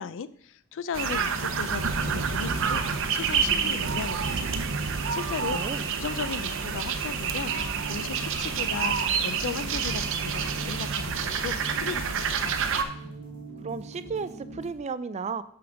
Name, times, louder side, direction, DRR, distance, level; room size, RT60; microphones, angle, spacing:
voice 1, 0.0-4.6 4.9-5.6 6.0-12.6, left 6 dB, 60° left, 15 dB, 0.4 m, -36 dB
sound 1, 0.9-12.8, right 6 dB, 60° right, 0.7 m, -28 dB
sound 2, 1.2-14.7, right 3 dB, 80° right, 1.2 m, -42 dB
voice 2, 5.5-5.9 13.6-15.4, right 5 dB, 30° right, 14 dB, 0.3 m, -33 dB
sound 3, 6.5-14.8, equal, 40° left, 2.8 m, -50 dB
5.9 x 5.0 x 6.2 m, 0.65 s
head